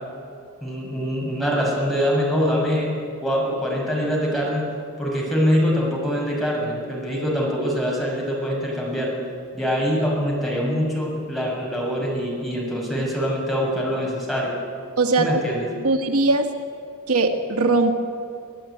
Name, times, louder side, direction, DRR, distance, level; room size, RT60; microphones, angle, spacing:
voice 1, 0.6-2.9 3.2-4.6 5.0-9.1 9.5-14.5 15.2-15.7, equal, ahead, -4 dB, 6.7 m, -24 dB
voice 2, 15.0-15.4 15.8-16.5 17.1-17.9, right 3 dB, 90° right, 4 dB, 1.8 m, -20 dB
25.5 x 15.5 x 9.4 m, 2.5 s
head